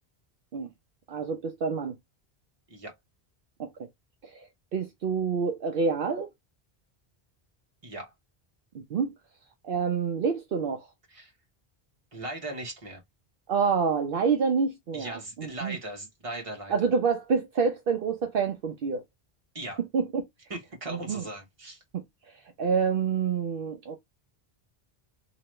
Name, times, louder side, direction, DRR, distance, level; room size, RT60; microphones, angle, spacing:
voice 1, 1.1-1.9 3.6-3.7 4.2-6.3 8.7-9.1 9.6-10.9 13.5-15.8 16.7-19.0 19.9-20.2 20.9-21.3 21.9-22.0 22.6-24.0, right 5 dB, 65° right, 0.8 m, -27 dB
voice 2, 12.1-13.0 14.9-16.7 19.5-19.8 20.5-21.8, right 2 dB, 35° right, 1.2 m, -38 dB
3.0 x 2.9 x 3.1 m
omnidirectional pair, 1.0 m